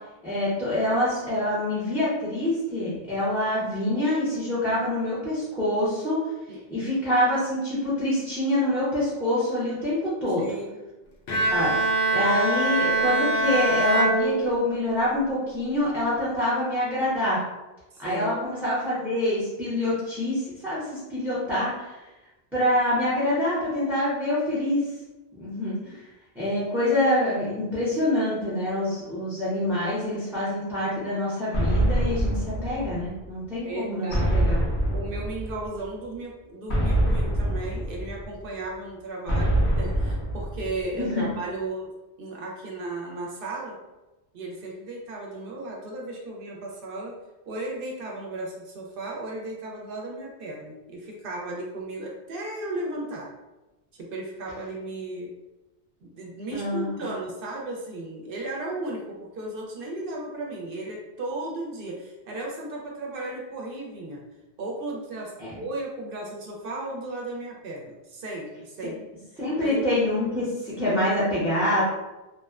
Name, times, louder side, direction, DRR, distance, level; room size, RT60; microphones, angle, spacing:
voice 1, 0.2-6.2 6.7-10.5 11.5-11.8 12.1-17.4 18.0-22.0 22.5-24.8 25.3-26.0 26.3-34.6 40.9-41.3 56.5-56.9 65.4-65.5 68.8-68.9 69.4-71.8, left 1 dB, ahead, -9 dB, 0.6 m, -26 dB
voice 2, 10.4-10.8 17.9-18.4 33.6-34.4 34.9-41.9 42.2-43.8 44.3-47.1 47.4-53.3 54.0-55.3 56.0-64.2 64.6-69.0 69.6-69.9, right 2 dB, 65° right, -1 dB, 0.7 m, -35 dB
Bowed string instrument, 11.3-15.0, right 2 dB, 65° left, 0.7 m, -24 dB
sound 1, 31.5-33.3 34.1-35.8 36.7-38.5 39.3-41.1, right 1 dB, 80° left, 1.1 m, -25 dB
2.8 x 2.1 x 2.3 m, 1.1 s
omnidirectional pair, 1.1 m